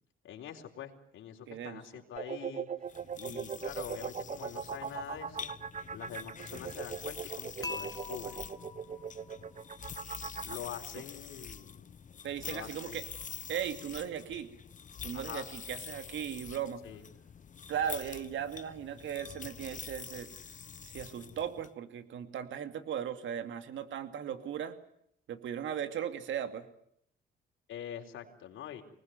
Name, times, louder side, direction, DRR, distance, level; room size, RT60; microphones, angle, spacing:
voice 1, 0.2-2.7 3.2-5.5 5.9-8.5 10.4-11.9 12.4-13.0 15.1-15.5 16.8-17.1 27.7-28.8, left 9 dB, 80° left, 3 dB, 4.2 m, -45 dB
voice 2, 1.5-1.8 3.3-3.4 12.2-13.0 13.5-14.5 15.0-16.8 17.7-20.3 20.8-24.8 25.3-26.6, right 9 dB, 75° right, 10 dB, 2.6 m, -37 dB
sound 1, 2.2-10.6, right 7 dB, 35° right, 1.1 m, -39 dB
sound 2, 2.9-21.7, left 7 dB, 40° left, 1.0 m, -46 dB
Dishes pots and pans / Chink clink, 7.6-9.8, left 2 dB, 20° left, 2.7 m, -44 dB
25.5 x 20.0 x 9.4 m, 0.71 s
cardioid pair, 90°, 20 cm